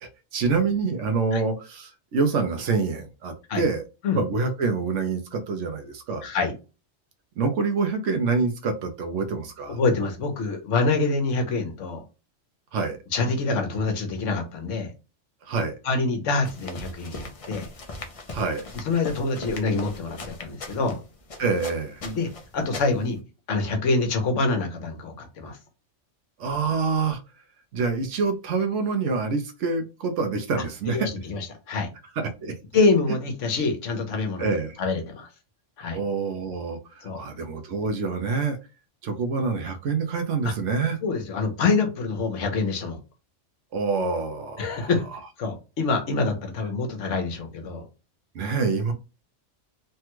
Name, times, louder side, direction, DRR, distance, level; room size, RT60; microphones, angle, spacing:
voice 1, 0.0-3.8 4.1-6.3 7.4-9.8 12.7-13.0 15.5-15.8 18.3-18.7 21.4-22.0 26.4-27.2 27.7-31.1 32.2-32.5 34.4-34.8 35.9-38.6 39.0-41.0 43.7-44.9 48.3-48.9, right 4 dB, 70° right, 1.0 m, -26 dB
voice 2, 6.2-6.5 9.7-12.0 13.1-14.9 15.8-17.7 18.7-21.0 22.0-23.2 23.5-25.6 30.9-31.9 32.7-34.5 34.8-35.3 35.8-36.0 37.0-37.2 41.0-43.0 44.6-45.0 45.4-47.8, left 3 dB, 70° left, 1.2 m, -26 dB
sound 1, 16.4-23.2, left 2 dB, 45° left, 0.4 m, -40 dB
3.4 x 2.2 x 2.9 m
omnidirectional pair, 1.3 m